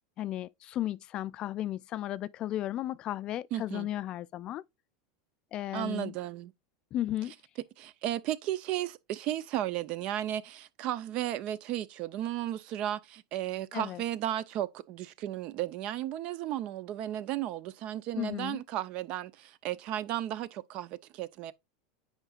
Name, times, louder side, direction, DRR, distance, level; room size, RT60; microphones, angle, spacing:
voice 1, 0.2-4.6 5.5-6.1 6.9-7.3 13.7-14.0 18.1-18.6, left 13 dB, 40° left, 0.4 m, -34 dB
voice 2, 3.5-3.9 5.7-6.5 7.8-21.5, right 12 dB, 50° right, 0.6 m, -34 dB
8.9 x 5.1 x 2.4 m
supercardioid pair, 125°, 2 cm